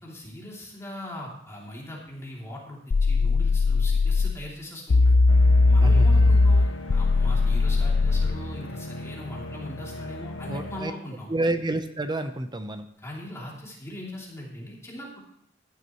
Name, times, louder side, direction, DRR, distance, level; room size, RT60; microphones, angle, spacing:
voice 1, 0.0-5.2 5.7-11.3 13.0-15.2, left 1 dB, 15° left, -4 dB, 2.9 m, -40 dB
sound 1, 2.9-4.4 4.9-8.4, left 3 dB, 55° left, 0.5 m, -19 dB
sound 2, 5.3-10.8, left 1 dB, 70° left, 1.2 m, -37 dB
voice 2, 5.8-6.4 10.4-10.9 11.3-12.9, right 2 dB, 20° right, 9 dB, 0.8 m, -29 dB
14.5 x 11.5 x 3.1 m, 0.69 s
head